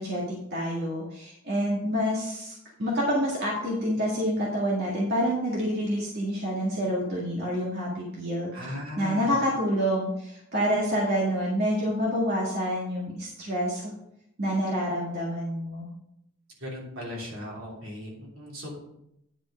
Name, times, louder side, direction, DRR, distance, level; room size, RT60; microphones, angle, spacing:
voice 1, 0.0-2.5 2.8-8.5 9.0-13.9 14.4-15.9, equal, 55° right, -4 dB, 1.8 m, -27 dB
voice 2, 8.5-9.4 16.6-18.8, left 1 dB, 75° right, -3 dB, 3.2 m, -37 dB
9.9 x 5.0 x 5.1 m, 0.79 s
head